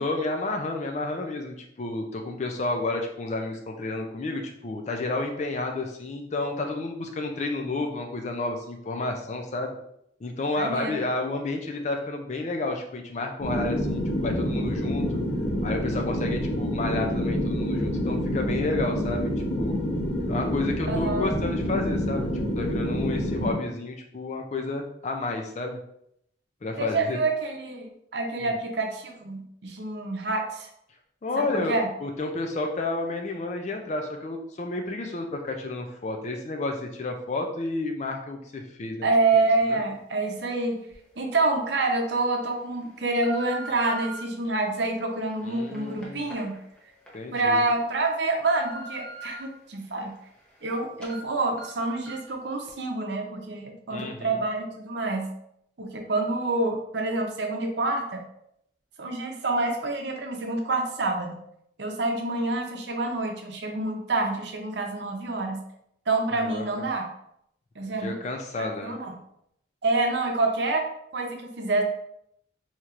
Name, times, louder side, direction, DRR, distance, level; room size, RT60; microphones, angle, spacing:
voice 1, 0.0-9.8 10.2-15.2 15.6-19.3 19.6-19.8 20.3-22.3 22.6-25.8 26.6-27.2 28.4-28.5 31.2-31.7 32.0-39.1 39.7-39.8 45.4-46.2 47.1-47.6 53.9-54.4 66.3-66.9 68.0-68.9, left 2 dB, 40° left, 3 dB, 0.4 m, -31 dB
voice 2, 10.6-11.0 20.9-21.3 26.8-30.7 31.4-31.9 39.0-40.8 41.2-46.6 47.3-50.1 50.6-55.3 55.8-58.2 59.0-61.4 61.8-65.6 66.1-67.1 67.8-68.1 68.8-69.1 69.8-70.9 71.1-71.8, right 2 dB, 70° right, 3 dB, 0.7 m, -27 dB
sound 1, 13.4-23.5, equal, 80° left, 1.0 m, -27 dB
sound 2, 40.9-41.0 41.6-41.9 42.6-44.2 44.9-47.2 47.6-47.7 48.1-49.4 49.9-50.7 51.0-51.2 51.6-51.7 52.1-52.3 52.7-52.8, right 2 dB, 5° left, 0.7 m, -43 dB
4.4 x 2.8 x 2.4 m, 0.74 s
head